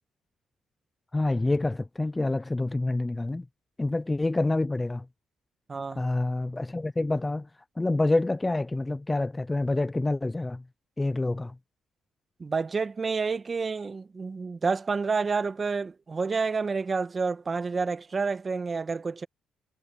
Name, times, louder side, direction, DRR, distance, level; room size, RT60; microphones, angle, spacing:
voice 1, 1.1-3.4 3.8-5.0 6.0-7.5 7.8-10.6 11.0-11.5, left 2 dB, 15° left, 0.4 m, -27 dB
voice 2, 5.7-6.0 12.4-19.3, right 4 dB, 35° right, 1.5 m, -29 dB
cardioid pair, 90°, 0 cm